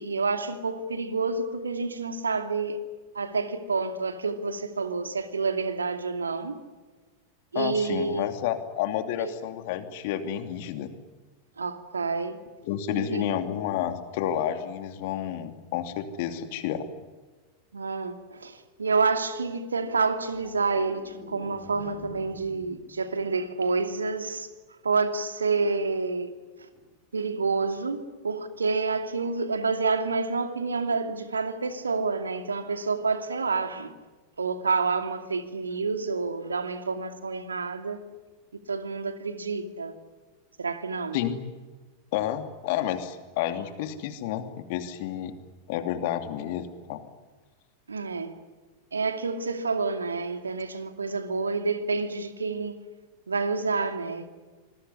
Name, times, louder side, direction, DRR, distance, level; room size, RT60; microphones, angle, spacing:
voice 1, 0.0-2.8 3.1-6.6 7.5-8.3 9.2-9.4 11.6-12.4 12.9-13.3 17.7-24.5 24.8-26.3 26.6-26.7 27.1-33.9 34.4-38.0 38.7-39.9 40.6-41.2 47.9-48.3 48.9-52.8 53.3-54.3, right 4 dB, 75° right, 2.5 m, -28 dB
voice 2, 7.5-10.9 12.6-16.9 41.1-41.4 42.1-45.3 45.7-47.0, left 11 dB, 50° left, 2.7 m, -30 dB
sound 1, 19.9-24.4 26.8-26.9, left 4 dB, 35° left, 3.8 m, -50 dB
26.5 x 21.5 x 9.8 m
figure-of-eight pair, 90°, 0 cm